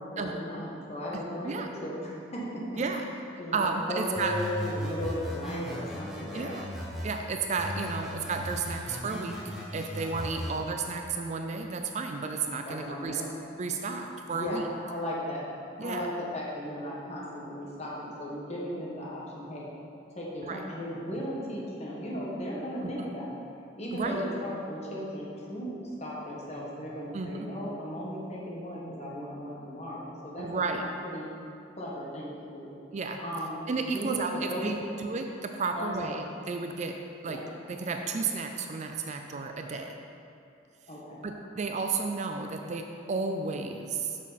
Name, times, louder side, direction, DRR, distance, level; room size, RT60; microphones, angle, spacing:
voice 1, 0.0-2.6 3.4-6.6 10.4-10.6 12.6-13.3 14.3-14.6 14.9-15.4 15.8-19.7 20.1-23.3 23.8-25.7 26.0-30.5 30.8-31.3 31.8-32.7 33.2-33.6 33.9-35.0 35.7-36.1 37.3-37.5 40.9-41.2, equal, 35° left, -4 dB, 1.4 m, -36 dB
voice 2, 2.8-3.1 3.5-4.4 6.3-6.7 7.0-13.2 13.6-14.6 15.8-16.1 20.4-20.6 22.8-23.1 23.9-24.2 27.1-27.5 30.4-30.8 32.9-33.2 33.7-37.0 37.2-37.4 37.7-39.9 41.2-44.2, right 4 dB, 35° right, 4 dB, 0.4 m, -32 dB
sound 1, 4.2-7.2 7.6-10.6, equal, ahead, 1.2 m, -37 dB
7.4 x 6.3 x 4.1 m, 2.6 s
head